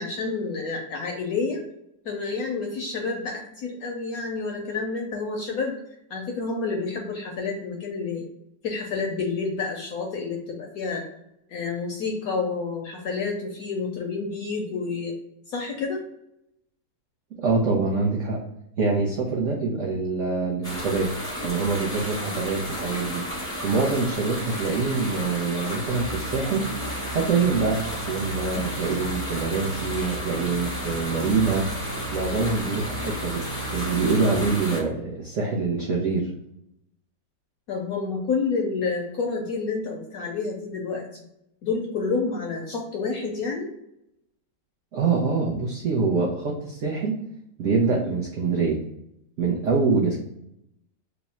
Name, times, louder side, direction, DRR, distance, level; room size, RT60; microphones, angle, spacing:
voice 1, 0.0-1.6 2.0-5.8 6.1-8.2 8.6-11.0 11.5-15.1 15.5-16.0 37.7-41.2 41.6-43.7, left 4 dB, 75° left, 1 dB, 0.8 m, -29 dB
voice 2, 17.4-18.4 18.8-21.1 21.4-23.2 23.6-26.6 27.1-31.7 32.1-36.3 44.9-47.2 47.6-48.8 49.4-50.2, right 4 dB, 90° right, -2 dB, 0.6 m, -25 dB
sound 1, 20.6-34.8, equal, 5° left, 0.5 m, -33 dB
sound 2, 25.9-34.5, right 2 dB, 45° right, 0.8 m, -37 dB
3.5 x 2.0 x 4.0 m, 0.82 s
omnidirectional pair, 2.0 m